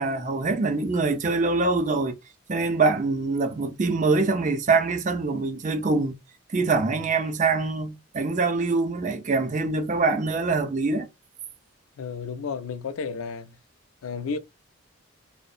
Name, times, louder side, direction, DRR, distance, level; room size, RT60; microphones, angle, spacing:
voice 1, 0.0-2.2 2.5-6.1 6.5-11.1, right 3 dB, 35° right, 0.4 m, -24 dB
voice 2, 12.0-13.6 14.0-14.4, left 5 dB, 85° left, 0.4 m, -32 dB
2.6 x 2.0 x 2.3 m
head